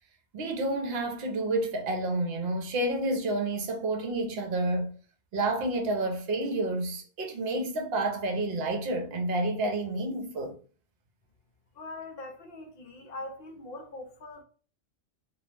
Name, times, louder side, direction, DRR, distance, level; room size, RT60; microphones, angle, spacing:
voice 1, 0.3-4.9 5.3-10.6, right 2 dB, 60° right, 0.8 m, -29 dB
voice 2, 11.8-14.4, left 2 dB, 60° left, 0.7 m, -42 dB
2.3 x 2.0 x 3.1 m
omnidirectional pair, 1.3 m